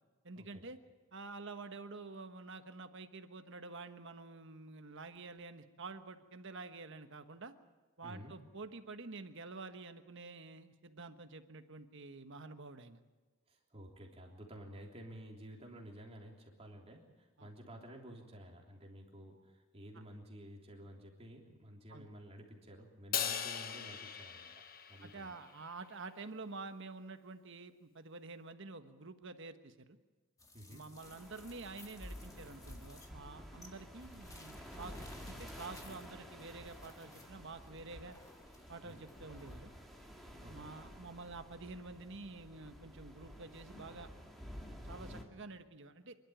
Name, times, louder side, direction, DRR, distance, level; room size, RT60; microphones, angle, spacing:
voice 1, 0.2-0.8 1.1-7.5 8.0-13.0 17.4-17.5 21.9-22.1 25.0-30.0 30.7-38.2 38.7-39.7 40.5-44.1 44.8-46.2, right 3 dB, 60° right, 8 dB, 1.3 m, -49 dB
voice 2, 8.0-8.3 13.5-24.5 24.9-25.4 30.5-30.8 38.8-39.0 40.2-40.7, equal, 30° right, 0 dB, 3.3 m, -52 dB
Crash cymbal, 23.1-25.5, left 8 dB, 45° left, 1.1 m, -39 dB
sound 1, 30.4-39.6, left 2 dB, 15° left, 1.8 m, -59 dB
sound 2, 31.0-45.2, equal, ahead, 2.4 m, -51 dB
27.0 x 12.0 x 9.3 m, 1.3 s
head